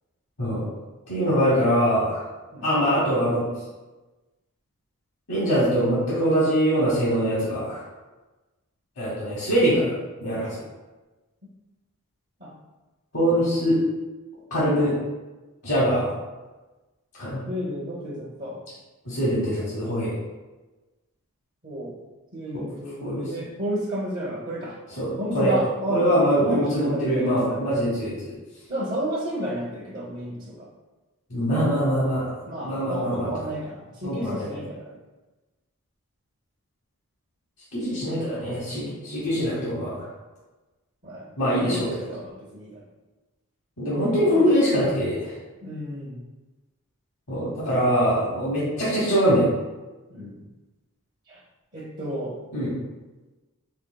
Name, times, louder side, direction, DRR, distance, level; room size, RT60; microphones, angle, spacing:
voice 1, 1.1-2.3 2.6-3.4 5.3-7.8 9.0-10.0 10.2-10.6 13.1-13.8 14.5-15.0 15.6-16.1 17.1-17.4 19.0-20.2 22.5-22.6 23.0-23.3 25.0-25.5 25.9-28.3 31.3-32.3 32.6-33.3 34.0-34.5 37.7-40.1 41.4-41.8 43.8-45.3 47.3-49.5 52.5-52.7, equal, 80° left, -9 dB, 1.2 m, -23 dB
voice 2, 17.5-18.6 21.6-21.9 22.3-24.8 25.2-27.7 28.7-30.7 32.5-35.0 41.0-41.3 41.6-42.7 44.3-44.5 45.6-46.2 50.1-50.4 51.3-51.4 51.7-52.4, equal, 40° right, -7 dB, 0.8 m, -31 dB
4.4 x 3.5 x 2.2 m, 1.2 s
head